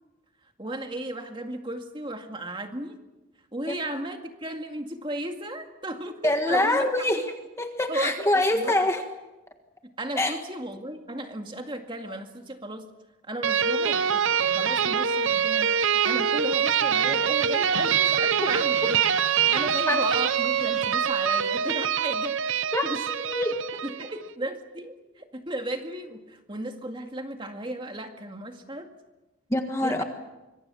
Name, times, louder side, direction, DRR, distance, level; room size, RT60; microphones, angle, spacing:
voice 1, 0.6-3.0 3.5-7.3 7.9-8.8 10.0-12.9 13.3-19.0 19.5-23.0 23.8-28.9 29.8-30.0, right 1 dB, 25° right, 4 dB, 2.1 m, -35 dB
voice 2, 6.2-9.0 10.2-10.4 19.9-20.0 22.7-22.8 23.3-23.6 29.5-30.0, left 1 dB, 15° left, 5 dB, 1.5 m, -25 dB
sound 1, 13.4-24.2, right 7 dB, 70° right, 0.9 m, -24 dB
25.5 x 23.0 x 7.1 m, 1.0 s
head